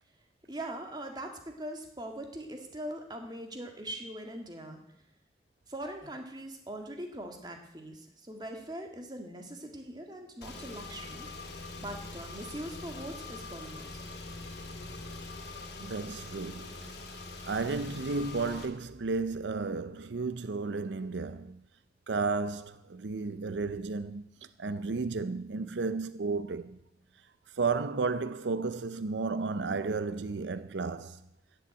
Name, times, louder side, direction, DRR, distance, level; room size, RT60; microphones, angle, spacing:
voice 1, 0.5-4.8 5.7-11.3 11.8-14.0, right 1 dB, 25° right, 1.9 m, -41 dB
Car / Engine, 10.4-18.7, left 3 dB, 70° left, 2.2 m, -43 dB
voice 2, 15.8-17.0 17.4-21.6 22.1-26.8 27.5-31.2, right 4 dB, 85° right, 0.6 m, -33 dB
14.5 x 7.2 x 9.2 m
head